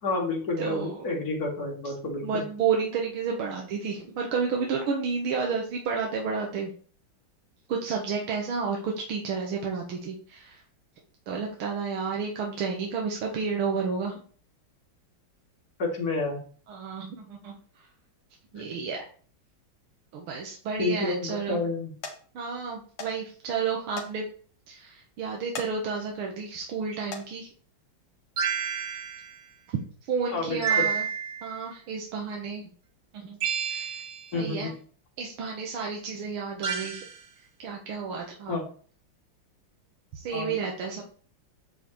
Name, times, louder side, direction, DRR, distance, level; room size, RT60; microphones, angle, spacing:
voice 1, 0.0-2.4 15.8-16.4 18.5-18.6 20.8-21.9 30.3-30.9 34.3-34.7 38.5-38.6 40.3-40.6, left 3 dB, 45° left, -1 dB, 2.5 m, -30 dB
voice 2, 0.6-1.1 2.2-6.7 7.7-10.6 11.3-14.1 16.7-17.6 18.5-19.0 20.1-21.6 22.4-24.3 24.7-27.5 30.1-31.1 31.4-32.6 33.1-33.9 34.3-34.7 35.2-37.0 37.6-38.6 40.1-41.0, right 5 dB, 90° right, 0 dB, 2.0 m, -31 dB
sound 1, 20.6-21.0 21.5-21.7 22.0-22.2 23.0-23.1 23.4-23.5 23.9-24.1 24.5-24.6 25.4-25.7 26.2-26.5 27.0-27.3 28.2-28.4 28.9-29.0, left 4 dB, 80° left, 2.2 m, -39 dB
sound 2, 28.4-29.3 30.6-31.6 33.4-34.3 36.6-37.2, right 7 dB, 60° right, 1.7 m, -29 dB
8.3 x 7.4 x 3.1 m, 0.43 s
omnidirectional pair, 2.3 m